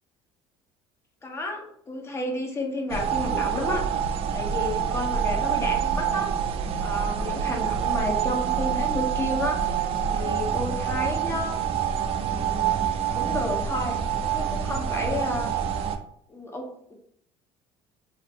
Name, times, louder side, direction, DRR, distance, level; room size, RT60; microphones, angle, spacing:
voice 1, 1.2-3.8 4.3-6.3 6.8-9.8 10.1-11.6 12.1-12.9 13.1-15.5 16.3-16.9, left 1 dB, 20° left, 1 dB, 0.7 m, -31 dB
sound 1, 2.9-16.0, right 8 dB, 50° right, 0.4 m, -26 dB
2.6 x 2.5 x 3.3 m, 0.67 s
cardioid pair, 115°, 12 cm